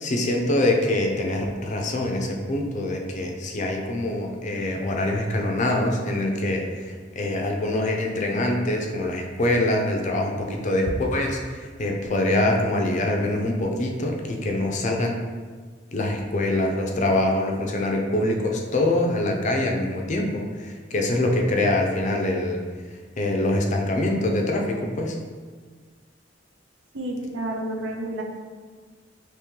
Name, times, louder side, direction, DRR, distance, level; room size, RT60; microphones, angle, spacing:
voice 1, 0.0-15.2 15.9-22.6 22.9-25.2, left 1 dB, 40° left, 1 dB, 0.5 m, -24 dB
voice 2, 26.9-28.2, right 1 dB, 90° right, 1 dB, 0.6 m, -30 dB
3.0 x 2.9 x 3.6 m, 1.5 s
head